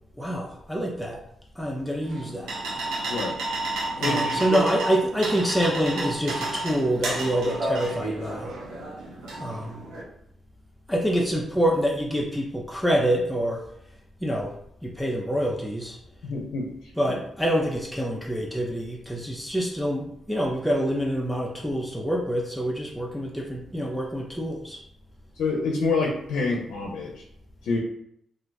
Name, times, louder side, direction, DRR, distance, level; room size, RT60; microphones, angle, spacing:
voice 1, 0.2-1.2 1.6-2.5 4.0-8.5 9.4-9.8 10.9-13.6 14.2-14.5 14.8-16.0 17.0-24.8, equal, ahead, -2 dB, 0.5 m, -26 dB
sound 1, 2.0-10.0, right 2 dB, 90° right, 0.8 m, -31 dB
voice 2, 3.1-3.4 4.0-4.6 16.2-16.9 25.3-27.2 27.6-27.8, left 3 dB, 80° left, -1 dB, 0.5 m, -27 dB
2.5 x 2.3 x 3.8 m, 0.72 s
cardioid pair, 70°, 0 cm